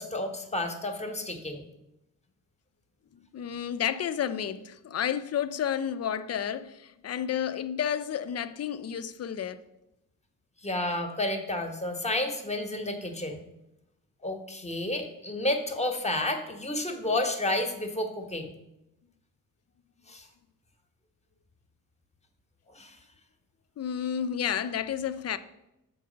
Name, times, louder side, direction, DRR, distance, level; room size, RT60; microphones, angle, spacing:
voice 1, 0.0-1.7 10.6-13.4 14.2-18.5 20.1-20.3 22.7-23.0, left 1 dB, 20° left, 1.0 m, -31 dB
voice 2, 3.1-9.6 23.8-25.4, left 9 dB, 45° left, 0.5 m, -31 dB
6.7 x 4.7 x 5.1 m
cardioid pair, 85°, 34 cm